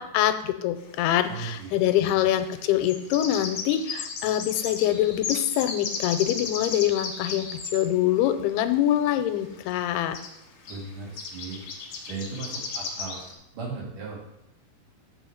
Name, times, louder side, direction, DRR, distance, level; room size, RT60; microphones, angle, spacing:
voice 1, 0.0-10.2, left 12 dB, 85° left, 9 dB, 2.6 m, -24 dB
sound 1, 0.8-0.9 2.6-7.8 9.6-9.7 9.9-10.0 10.1-10.4 10.7-10.9 11.2-13.3, left 4 dB, 60° left, 2.0 m, -35 dB
voice 2, 1.3-1.7 1.9-2.2 10.7-11.6 12.1-13.2 13.5-14.2, right 4 dB, 60° right, -3 dB, 3.2 m, -37 dB
7.7 x 4.9 x 6.3 m, 0.87 s
omnidirectional pair, 4.6 m